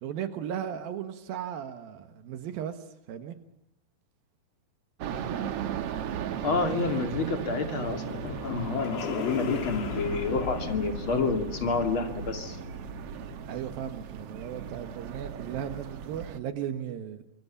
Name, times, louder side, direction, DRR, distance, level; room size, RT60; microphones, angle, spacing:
voice 1, 0.0-2.8 3.1-3.4 13.5-17.3, right 9 dB, 80° right, 9 dB, 3.2 m, -36 dB
sound 1, 5.0-16.4, right 8 dB, 65° right, 1.6 m, -37 dB
voice 2, 6.4-12.6, left 4 dB, 40° left, 6 dB, 3.0 m, -29 dB
sound 2, 7.4-13.8, left 7 dB, 80° left, 3.6 m, -38 dB
25.5 x 23.0 x 7.2 m, 0.78 s
omnidirectional pair, 4.1 m